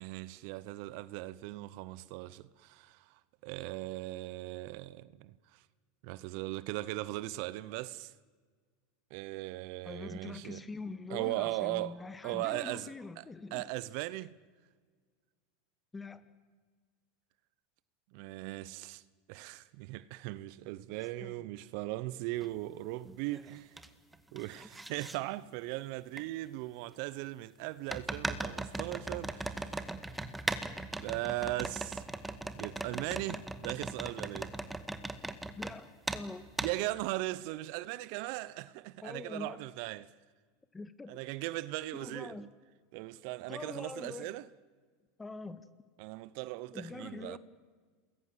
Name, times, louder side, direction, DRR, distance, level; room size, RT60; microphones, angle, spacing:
voice 1, 0.0-5.6 6.0-8.1 9.1-10.6 11.1-12.0 12.2-12.9 13.2-13.3 13.5-14.4 18.1-19.0 19.3-23.7 24.3-29.8 31.0-32.1 32.5-34.5 36.6-40.1 41.1-42.5 42.9-44.4 46.0-47.4, right 18 dB, 65° right, 0.8 m, -38 dB
voice 2, 9.9-13.7 15.9-16.2 21.2-21.5 35.6-36.5 39.0-39.6 40.7-41.1 41.9-42.5 43.5-44.4 45.2-45.6 46.7-47.4, left 3 dB, 15° left, 1.8 m, -44 dB
sound 1, 22.4-22.5 23.1-23.9 24.1-25.2 26.2-26.3 27.9-35.7 36.1-36.2 36.6-36.7, right 2 dB, 10° right, 1.9 m, -38 dB
28.0 x 21.0 x 7.5 m
hypercardioid pair, 100°, 0 cm